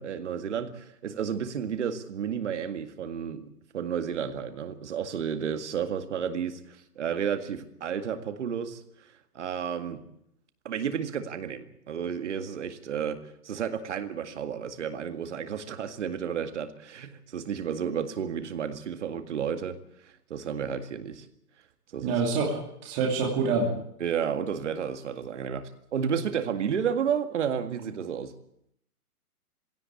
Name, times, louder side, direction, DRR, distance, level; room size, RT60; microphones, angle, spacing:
voice 1, 0.0-3.5 3.7-8.8 9.3-10.0 10.6-19.8 20.0-21.3 21.9-22.2 24.0-28.3, right 7 dB, 50° right, 2.0 m, -32 dB
voice 2, 22.0-23.7, right 4 dB, 20° right, 2.9 m, -26 dB
20.0 x 17.0 x 8.5 m
hypercardioid pair, 170°, 46 cm